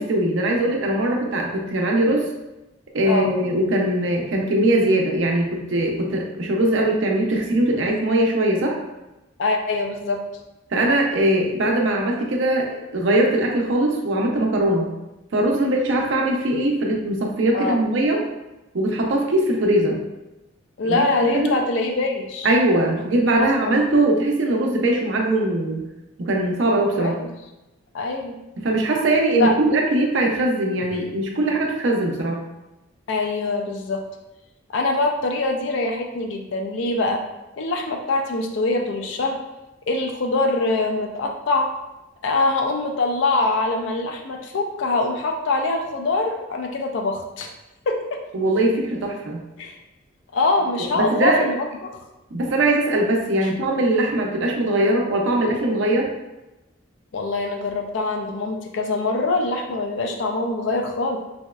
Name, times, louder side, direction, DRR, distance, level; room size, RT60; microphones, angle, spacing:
voice 1, 0.0-2.3 2.9-8.8 10.7-14.9 15.3-18.2 18.7-20.0 20.8-21.0 21.3-21.5 22.4-25.8 26.2-27.2 28.6-32.4 48.3-49.4 50.9-51.5 52.3-56.1, right 1 dB, 70° right, 0 dB, 0.5 m, -21 dB
voice 2, 9.4-10.2 17.5-17.8 20.8-23.7 27.0-27.1 27.9-28.4 29.3-29.6 30.9-31.0 33.1-34.0 34.7-37.2 37.6-39.4 39.9-41.7 42.2-47.5 47.9-48.0 49.6-49.8 50.3-51.7 51.9-52.0 57.1-61.2, left 2 dB, 70° left, 3 dB, 0.4 m, -24 dB
3.0 x 2.7 x 2.3 m, 0.99 s
head